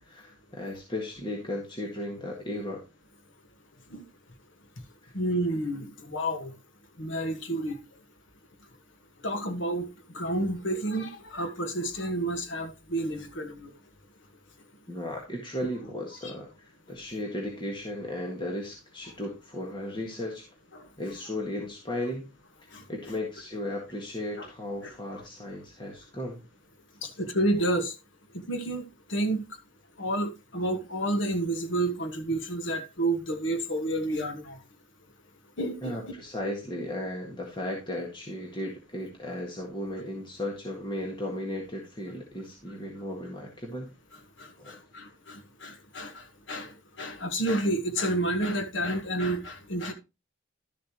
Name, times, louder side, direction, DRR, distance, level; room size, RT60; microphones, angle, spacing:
voice 1, 0.0-2.8 5.0-5.1 14.9-20.4 21.0-22.3 22.9-26.4 35.8-43.9 44.6-44.8, left 1 dB, 25° left, 1.7 m, -35 dB
voice 2, 5.1-6.5 7.0-7.8 9.2-9.9 10.1-13.7 16.2-16.3 20.7-20.9 22.7-22.8 24.4-24.5 24.8-24.9 27.0-27.9 28.5-28.8 29.1-29.4 30.0-34.6 35.6-36.0 44.4-49.9, right 1 dB, 65° left, 1.4 m, -30 dB
12.0 x 7.1 x 3.0 m
head